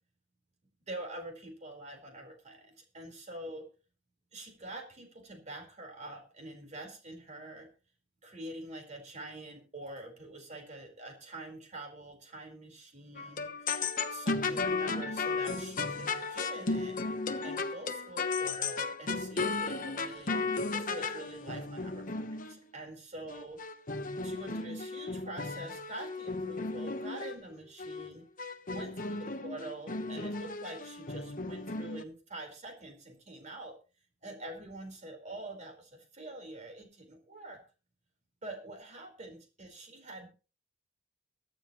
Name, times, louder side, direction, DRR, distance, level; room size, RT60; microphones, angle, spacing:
voice 1, 0.9-3.7 4.3-7.7 8.2-13.5 14.1-17.0 17.4-20.5 20.7-23.6 24.2-28.2 28.7-33.7 34.2-37.6 38.4-40.3, right 1 dB, 40° right, 2 dB, 4.7 m, -45 dB
sound 1, 13.2-22.6 23.3-27.4 27.8-28.1 28.4-32.0, left 3 dB, 45° left, 1.1 m, -35 dB
24.0 x 9.2 x 3.1 m, 0.35 s
head